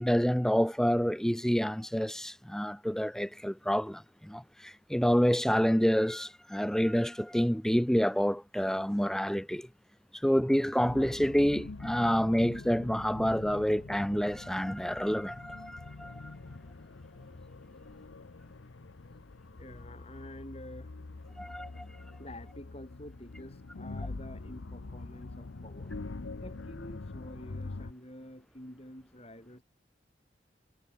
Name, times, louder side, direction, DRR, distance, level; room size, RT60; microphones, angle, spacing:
voice 1, 0.0-9.7 10.2-16.3 21.4-21.9, equal, 5° left, 0.5 m, -28 dB
sound 1, 10.8-27.9, left 3 dB, 90° left, 0.8 m, -44 dB
voice 2, 19.6-20.9 22.2-29.6, left 1 dB, 30° left, 7.8 m, -48 dB
head